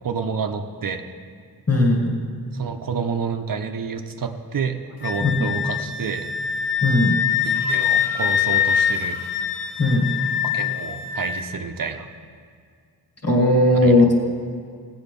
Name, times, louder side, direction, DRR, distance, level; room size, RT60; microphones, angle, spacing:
voice 1, 0.0-1.1 2.5-6.3 7.5-9.2 10.5-12.1 13.8-14.0, right 5 dB, 60° right, 6 dB, 0.8 m, -29 dB
voice 2, 1.7-2.2 5.2-5.5 6.8-7.2 9.8-10.1 13.2-14.1, left 2 dB, 40° left, 0 dB, 2.1 m, -17 dB
Wind instrument woodwind instrument, 5.0-11.4, left 8 dB, 80° left, 1.2 m, -24 dB
16.5 x 7.9 x 5.3 m, 2.2 s
wide cardioid pair, 120°, 38 cm